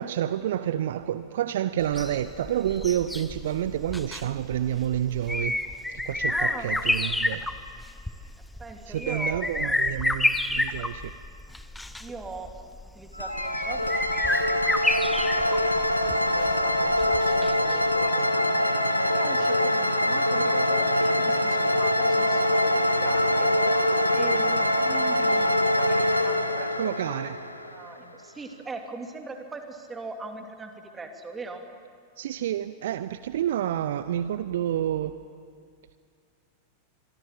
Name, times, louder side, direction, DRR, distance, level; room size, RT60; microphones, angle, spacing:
voice 1, 0.0-5.6 5.9-7.4 8.9-11.1 26.8-27.4 32.2-35.2, right 11 dB, 60° right, 14 dB, 0.7 m, -29 dB
sound 1, 1.8-17.8 18.1-18.2, left 1 dB, 5° left, 1.0 m, -30 dB
voice 2, 6.3-6.7 8.6-9.8 12.0-12.5 12.8-15.7 16.0-18.8 19.1-23.5 24.1-27.0 27.3-31.6, right 3 dB, 15° right, 4 dB, 2.8 m, -41 dB
sound 2, 13.2-28.0, left 1 dB, 85° left, 1.2 m, -24 dB
25.0 x 23.0 x 7.5 m, 2.2 s
figure-of-eight pair, 90°, 0 cm